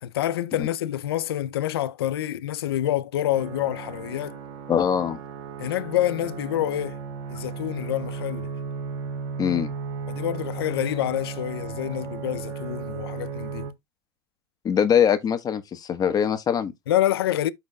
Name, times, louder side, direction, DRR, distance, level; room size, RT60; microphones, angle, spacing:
voice 1, 0.0-4.4 5.6-7.0 7.3-8.5 10.1-13.7 16.9-17.5, left 12 dB, 90° left, 0.6 m, -27 dB
sound 1, 3.3-13.7, right 5 dB, 55° right, 2.2 m, -35 dB
voice 2, 4.7-5.2 9.4-9.7 14.6-16.7, left 8 dB, 30° left, 1.3 m, -22 dB
13.0 x 4.7 x 2.3 m
supercardioid pair, 110°, 13 cm